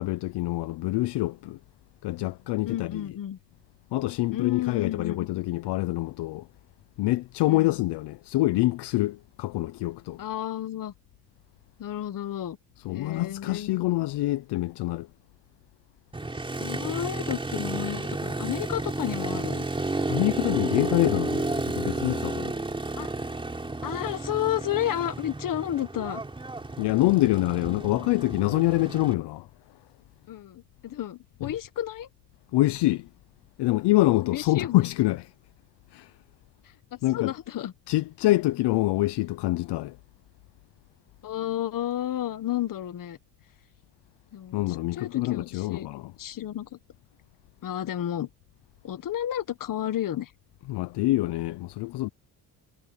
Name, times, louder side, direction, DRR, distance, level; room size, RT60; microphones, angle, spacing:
voice 1, 0.0-1.6 2.0-3.0 3.9-6.5 7.0-10.2 12.8-15.1 20.1-22.6 26.8-29.5 31.4-31.5 32.5-33.1 33.6-35.2 35.9-36.1 37.0-37.3 37.9-40.0 44.5-46.1 50.7-52.1, left 18 dB, 70° left, 0.7 m, -26 dB
voice 2, 2.6-3.4 4.3-5.3 7.5-7.8 10.2-10.9 11.8-12.6 12.9-14.1 16.6-19.7 23.0-23.1 23.8-26.2 27.6-27.9 28.8-29.0 30.3-32.1 34.1-34.9 36.9-37.7 41.2-43.2 44.3-45.9 46.2-46.8 47.6-48.3 48.8-50.3, left 12 dB, 50° left, 1.5 m, -32 dB
Motorcycle, 16.1-29.1, right 2 dB, 10° right, 3.9 m, -32 dB
cardioid pair, 140°, 43 cm